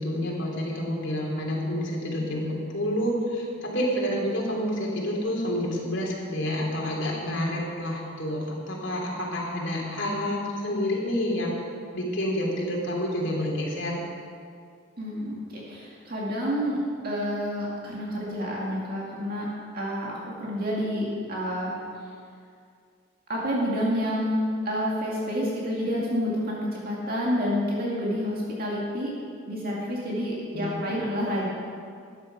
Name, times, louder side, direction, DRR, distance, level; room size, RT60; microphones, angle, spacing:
voice 1, 0.0-11.5 11.9-14.0 30.5-30.9, equal, 60° left, -3 dB, 3.4 m, -28 dB
voice 2, 15.0-21.8 23.3-29.1 29.5-31.5, equal, 45° right, -5 dB, 2.2 m, -29 dB
13.0 x 10.0 x 6.0 m, 2.3 s
head